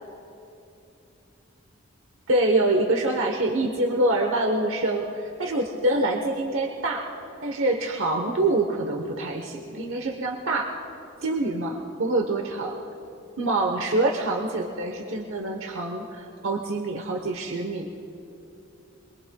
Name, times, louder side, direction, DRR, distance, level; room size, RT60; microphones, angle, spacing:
voice 1, 2.3-7.1 7.4-10.7 11.2-12.7 13.4-17.9, right 2 dB, 70° right, 2 dB, 1.0 m, -25 dB
26.0 x 22.0 x 2.3 m, 2.8 s
head